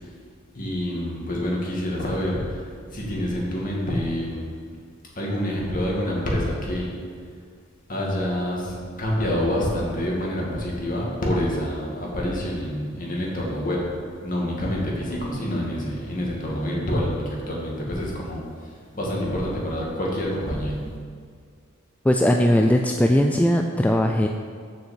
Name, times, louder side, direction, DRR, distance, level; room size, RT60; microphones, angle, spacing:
voice 1, 0.5-4.5 5.2-6.9 7.9-13.9 14.2-18.7 18.9-20.9, equal, 45° left, -3 dB, 2.3 m, -27 dB
voice 2, 22.0-24.3, equal, 5° left, 3 dB, 0.3 m, -19 dB
7.3 x 6.2 x 7.3 m, 2.1 s
head